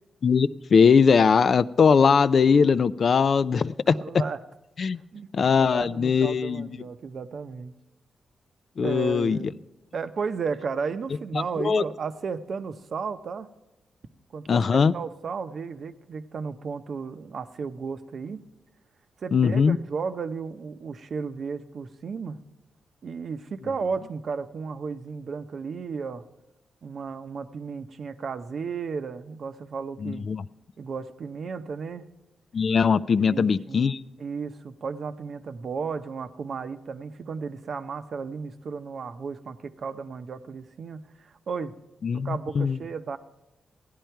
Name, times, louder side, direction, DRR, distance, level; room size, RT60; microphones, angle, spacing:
voice 1, 0.2-4.0 4.8-5.0 5.3-6.8 8.8-9.4 11.3-11.8 14.5-14.9 19.3-19.8 30.0-30.4 32.5-34.0 42.0-42.8, left 6 dB, 55° left, 17 dB, 0.4 m, -21 dB
voice 2, 3.9-4.4 5.1-5.3 5.6-7.7 8.8-9.5 9.9-13.5 14.3-18.4 19.2-22.4 23.0-26.2 26.8-30.3 30.8-32.1 33.2-33.9 34.2-41.8 42.1-43.2, right 5 dB, 60° right, 10 dB, 0.7 m, -34 dB
16.0 x 10.5 x 4.5 m, 0.99 s
cardioid pair, 85°, 0 cm